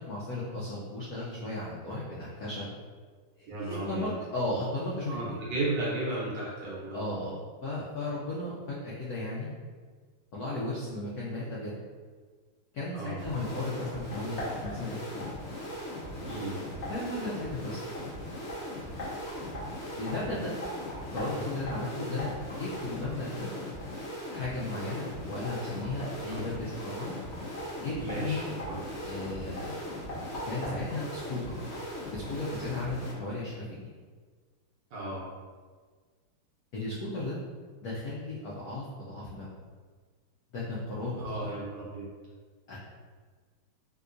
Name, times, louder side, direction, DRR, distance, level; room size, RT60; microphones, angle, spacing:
voice 1, 0.0-2.7 3.4-5.4 6.9-7.4 7.6-9.5 10.3-11.7 12.7-15.3 16.9-17.9 20.0-20.5 21.1-23.5 24.3-27.1 27.8-28.5 29.0-29.8 30.4-31.5 32.1-33.9 36.7-37.4 37.8-39.5 40.5-41.5 42.7-42.8, left 2 dB, 90° left, -7 dB, 0.8 m, -35 dB
voice 2, 3.5-4.1 5.1-7.1 12.9-13.2 16.2-16.6 26.3-26.5 28.0-28.8 34.9-35.2 41.2-42.0, right 2 dB, 65° right, -6 dB, 1.3 m, -34 dB
sound 1, 13.2-33.1, equal, 45° left, 0.9 m, -38 dB
3.6 x 2.8 x 2.5 m, 1.5 s
omnidirectional pair, 2.4 m